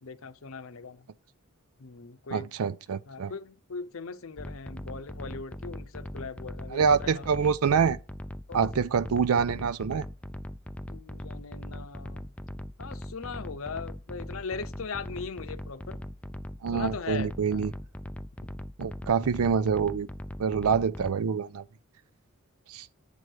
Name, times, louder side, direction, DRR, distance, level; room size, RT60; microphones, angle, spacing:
voice 1, 0.0-1.1 1.8-2.5 3.1-7.3 8.5-8.7 10.9-12.3 12.8-16.0 16.7-17.7 19.0-19.3, left 4 dB, 70° left, 0.7 m, -40 dB
voice 2, 2.3-3.3 6.7-8.0 8.5-10.1 16.6-17.7 18.8-20.1 20.4-21.6 22.7-22.9, right 6 dB, 85° right, 0.4 m, -26 dB
sound 1, 4.4-21.1, left 1 dB, 5° left, 0.4 m, -40 dB
8.5 x 6.3 x 4.6 m
head